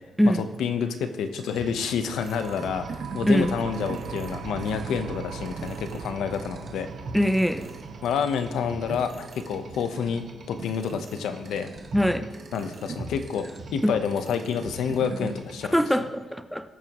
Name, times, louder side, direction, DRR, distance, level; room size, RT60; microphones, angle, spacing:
voice 1, 0.2-6.9 8.0-11.7 12.5-15.8, left 7 dB, 85° left, 8 dB, 0.9 m, -29 dB
sound 1, 1.3-15.9, right 3 dB, 40° right, 1.5 m, -40 dB
sound 2, 2.1-13.4, right 8 dB, 85° right, 0.7 m, -41 dB
voice 2, 7.1-7.7 11.9-12.3 13.8-13.9 15.7-16.7, equal, ahead, 10 dB, 0.5 m, -22 dB
19.5 x 8.9 x 3.1 m, 1.3 s
cardioid pair, 135°, 0 cm